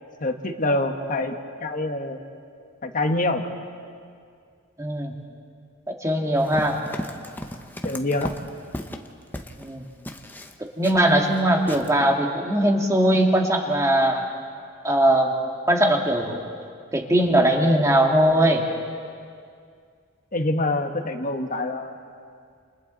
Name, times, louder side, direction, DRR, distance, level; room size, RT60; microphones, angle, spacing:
voice 1, 0.2-1.3 1.6-2.2 2.8-3.4 7.8-8.3 20.3-22.0, left 2 dB, 40° left, 5 dB, 1.5 m, -25 dB
voice 2, 4.8-5.1 5.9-6.8 9.6-9.8 10.6-14.2 14.8-15.3 15.7-16.4 16.9-18.7, right 1 dB, 15° right, 1 dB, 2.1 m, -20 dB
Run, 6.4-9.7 10.0-11.4 11.7-11.9, left 1 dB, 10° left, 1.0 m, -35 dB
29.5 x 28.5 x 4.1 m, 2.2 s
head